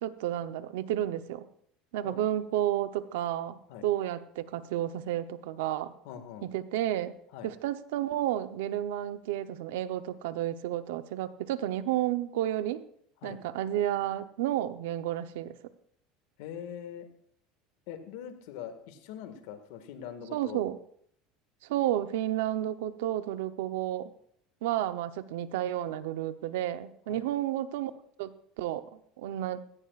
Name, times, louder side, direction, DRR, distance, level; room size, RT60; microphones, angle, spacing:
voice 1, 0.0-1.5 1.9-5.9 6.4-7.2 7.4-12.8 13.2-15.5 20.3-20.8 21.7-24.1 24.6-27.9 28.2-28.9 29.2-29.6, right 12 dB, 90° right, 11 dB, 0.8 m, -31 dB
voice 2, 6.0-6.5 7.3-7.5 13.2-13.4 16.4-17.1 17.9-20.6 27.1-27.3, left 9 dB, 75° left, 8 dB, 1.9 m, -42 dB
16.5 x 15.0 x 2.5 m, 0.67 s
supercardioid pair, 135°, 0 cm